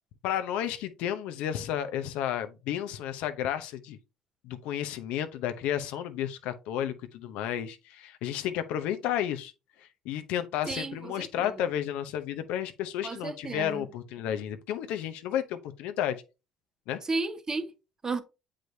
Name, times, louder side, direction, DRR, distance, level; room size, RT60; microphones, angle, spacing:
voice 1, 0.2-4.0 4.4-9.5 9.8-16.2 16.9-17.0, left 10 dB, 70° left, 0.7 m, -32 dB
voice 2, 10.7-11.5 13.0-13.8 17.1-17.7 18.0-18.2, right 3 dB, 30° right, 1.0 m, -33 dB
7.6 x 5.0 x 2.7 m
hypercardioid pair, 70°, 2 cm